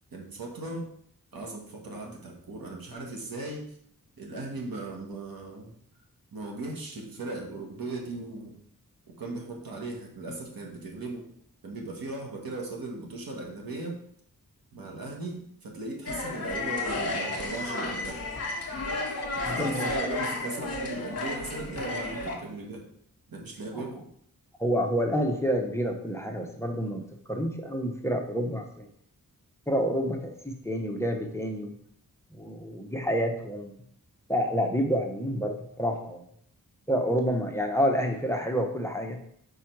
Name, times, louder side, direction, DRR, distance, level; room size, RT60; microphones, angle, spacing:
voice 1, 0.1-0.9 1.3-3.6 4.2-5.7 6.3-8.5 9.2-11.3 11.6-14.0 14.7-18.2 19.3-22.9 23.3-24.1, right 2 dB, 85° right, 0 dB, 1.5 m, -37 dB
sound 1, 16.0-22.4, left 2 dB, 45° left, 1.2 m, -32 dB
voice 2, 19.4-19.9 24.6-27.0 27.3-28.9 29.7-31.7 32.3-33.8 34.3-36.2 36.9-39.2, equal, 10° left, 3 dB, 0.7 m, -28 dB
5.0 x 4.8 x 4.5 m, 0.68 s
wide cardioid pair, 110°, 34 cm